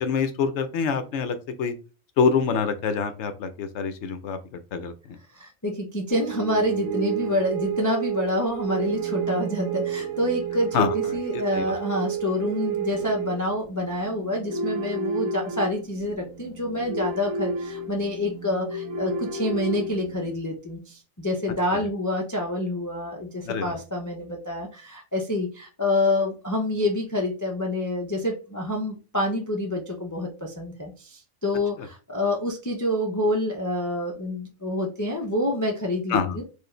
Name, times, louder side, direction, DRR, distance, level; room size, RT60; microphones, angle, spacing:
voice 1, 0.0-1.7 2.2-5.2 10.7-11.8 21.7-21.8 23.4-23.8 31.8-31.9 36.1-36.4, left 5 dB, 65° left, 9 dB, 0.8 m, -26 dB
voice 2, 5.3-36.4, left 1 dB, 30° left, 0 dB, 0.3 m, -27 dB
sound 1, 6.1-20.3, right 5 dB, 75° right, 1.0 m, -31 dB
4.5 x 2.5 x 3.1 m, 0.34 s
omnidirectional pair, 1.5 m